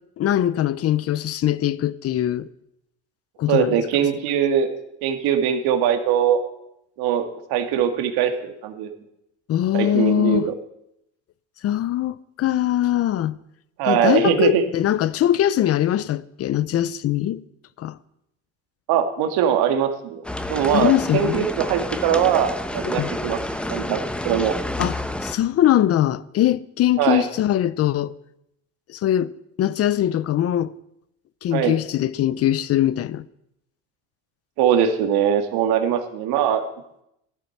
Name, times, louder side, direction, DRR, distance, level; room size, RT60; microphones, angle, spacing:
voice 1, 0.2-2.5 3.4-3.8 9.5-10.5 11.6-13.4 13.9-17.4 17.8-18.0 20.7-21.5 22.8-23.1 24.8-28.1 28.9-29.3 29.6-30.7 31.4-33.2, left 12 dB, 40° left, 0.6 m, -21 dB
voice 2, 3.5-4.7 5.0-6.4 7.0-8.9 9.7-10.5 13.8-14.6 18.9-20.2 20.5-23.4 23.7-24.6 27.0-27.3 31.5-31.8 34.6-36.6, right 9 dB, 75° right, 2.1 m, -21 dB
sound 1, 20.2-25.3, left 1 dB, 5° left, 0.9 m, -29 dB
15.0 x 12.0 x 5.9 m
cardioid pair, 140°, 38 cm